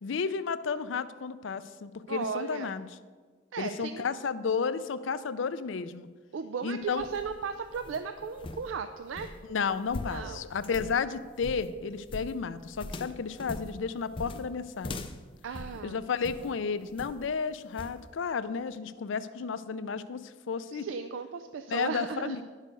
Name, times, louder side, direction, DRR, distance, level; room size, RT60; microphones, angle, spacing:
voice 1, 0.0-2.9 3.6-6.1 6.6-7.1 9.5-15.0 15.8-20.9 21.7-22.4, left 5 dB, 80° left, 13 dB, 0.4 m, -32 dB
voice 2, 2.1-2.7 3.5-4.0 6.3-9.3 10.1-10.4 15.4-16.0 20.7-22.4, right 6 dB, 85° right, 9 dB, 0.4 m, -36 dB
sound 1, 6.8-16.5 17.0-17.3 17.8-18.0, left 2 dB, 25° left, 0.5 m, -42 dB
10.0 x 6.5 x 5.2 m, 1.5 s
head